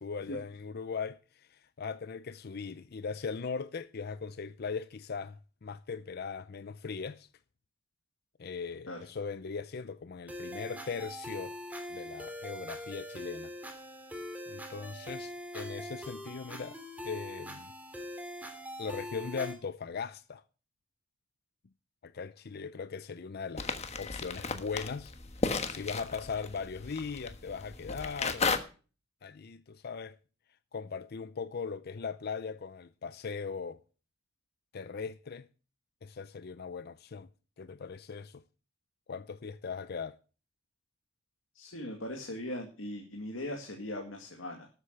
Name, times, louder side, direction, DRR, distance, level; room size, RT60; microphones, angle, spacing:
voice 1, 0.0-7.3 8.4-11.6 11.9-13.5 14.5-17.7 18.8-20.4 22.0-23.7 24.0-25.1 25.5-28.5 29.2-30.2 30.7-33.8 34.7-35.5 36.0-37.3 37.6-38.4 39.1-40.2, left 5 dB, 50° left, 0.5 m, -39 dB
sound 1, 10.3-19.5, equal, 10° right, 2.6 m, -42 dB
sound 2, 23.6-28.6, left 4 dB, 35° left, 1.3 m, -34 dB
voice 2, 41.5-44.7, left 1 dB, 80° left, 2.2 m, -39 dB
12.5 x 8.2 x 6.6 m
head